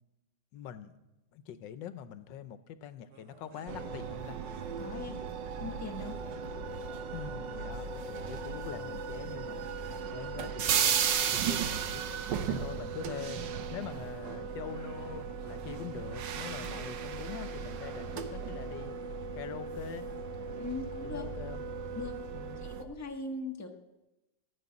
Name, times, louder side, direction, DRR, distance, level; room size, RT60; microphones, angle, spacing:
voice 1, 0.5-1.0 1.3-4.4 7.1-13.4 13.7-19.0 19.3-20.1 21.1-21.6 22.3-22.6, left 9 dB, 85° left, 12 dB, 1.4 m, -44 dB
sound 1, 3.1-9.7, right 5 dB, 65° right, 1.7 m, -56 dB
sound 2, 3.7-22.8, right 7 dB, 80° right, 1.6 m, -35 dB
voice 2, 4.8-5.2 5.6-6.2 20.6-21.3 21.9-22.2 22.6-23.7, left 3 dB, 10° left, 3 dB, 1.1 m, -40 dB
14.5 x 7.3 x 9.6 m, 0.99 s
omnidirectional pair, 1.9 m